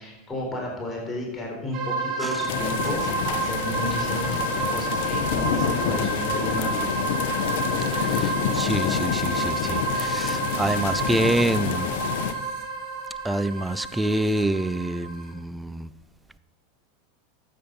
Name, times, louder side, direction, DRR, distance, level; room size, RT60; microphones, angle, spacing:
voice 1, 0.0-6.9, left 1 dB, 15° left, 4.2 m, -32 dB
sound 1, 1.7-15.3, right 3 dB, 45° right, 2.7 m, -30 dB
sound 2, 2.5-12.3, left 9 dB, 65° left, 1.0 m, -28 dB
voice 2, 7.9-11.9 13.2-15.9, right 1 dB, 5° right, 0.5 m, -27 dB
13.0 x 8.6 x 5.4 m
hypercardioid pair, 95°, 0 cm